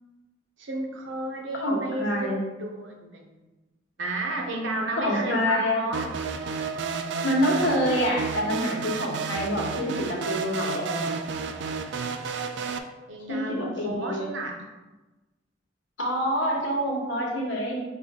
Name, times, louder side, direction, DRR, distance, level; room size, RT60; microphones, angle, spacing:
voice 1, 0.6-2.3 2.6-3.4 4.0-6.1 13.1-14.6, right 2 dB, 85° right, 2 dB, 0.8 m, -32 dB
voice 2, 1.5-2.4 5.0-5.9 7.2-11.0 13.3-14.3 16.0-17.8, equal, 80° left, -3 dB, 1.2 m, -26 dB
sound 1, 5.9-12.8, right 5 dB, 65° right, 0.3 m, -31 dB
5.8 x 2.5 x 3.6 m, 1.1 s
head